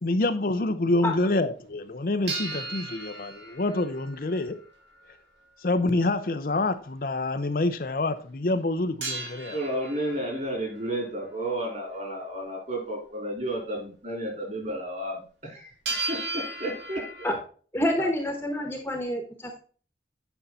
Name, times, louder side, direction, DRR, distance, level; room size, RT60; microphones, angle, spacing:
voice 1, 0.0-4.6 5.6-9.6 18.0-18.1, left 2 dB, 50° left, 0.6 m, -27 dB
sound 1, 2.3-4.6 9.0-10.8 15.9-17.4, right 3 dB, 85° right, 2.1 m, -35 dB
voice 2, 9.5-15.7 16.1-16.2 16.6-17.0, right 1 dB, 40° right, 3.9 m, -32 dB
voice 3, 17.7-19.6, left 1 dB, 10° left, 1.2 m, -27 dB
9.1 x 5.5 x 4.1 m
head